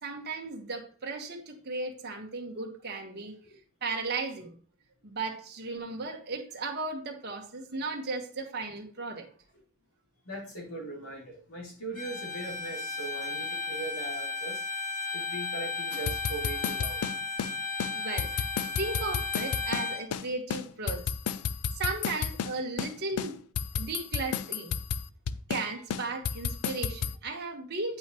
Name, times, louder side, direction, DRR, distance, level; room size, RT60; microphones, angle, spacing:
voice 1, 0.0-3.4 3.8-4.5 5.0-9.3 17.9-18.4 18.8-21.0 21.8-23.3 23.7-24.7 25.5-28.0, right 3 dB, 45° right, 1 dB, 1.3 m, -35 dB
voice 2, 10.2-14.6 15.1-17.0, right 2 dB, 70° left, -1 dB, 2.7 m, -40 dB
Bowed string instrument, 11.9-20.1, left 3 dB, 40° left, 2.1 m, -35 dB
sound 1, 15.9-17.5 17.8-17.9 18.2-20.2 20.5-22.5 22.8-22.9 23.2-25.6 25.9-27.1, left 7 dB, 85° left, 0.4 m, -32 dB
8.7 x 5.5 x 3.0 m, 0.42 s
head